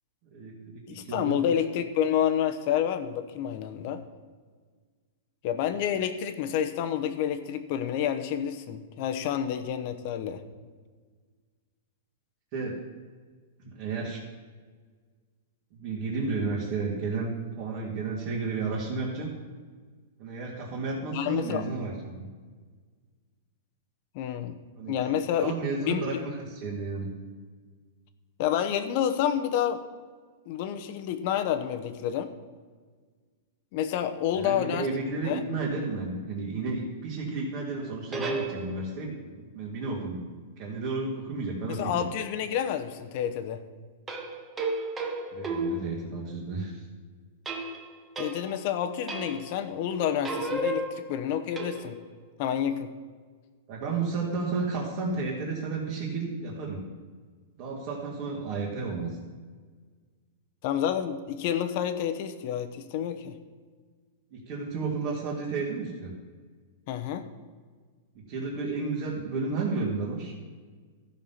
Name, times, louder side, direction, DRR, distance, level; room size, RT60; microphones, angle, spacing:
voice 1, 0.3-1.3 12.5-12.8 13.6-14.2 15.7-17.3 17.6-19.3 20.2-22.3 24.7-24.9 25.4-27.1 34.3-40.2 40.6-42.0 45.3-46.8 53.7-56.8 57.6-59.2 64.3-66.1 68.3-70.3, right 4 dB, 35° right, -5 dB, 2.2 m, -32 dB
voice 2, 0.9-4.0 5.4-10.4 21.1-21.6 24.1-24.6 24.9-26.2 28.4-29.8 30.5-32.3 33.7-34.9 35.2-35.4 41.7-43.6 48.2-52.0 52.4-52.9 60.6-63.3 66.9-67.2, left 9 dB, 45° left, 9 dB, 0.9 m, -29 dB
sound 1, 37.8-39.1 44.1-46.5 47.5-48.7 49.1-49.6 49.9-52.2, right 2 dB, 15° right, 1.1 m, -34 dB
14.0 x 5.7 x 5.8 m, 1.5 s
supercardioid pair, 160°, 0 cm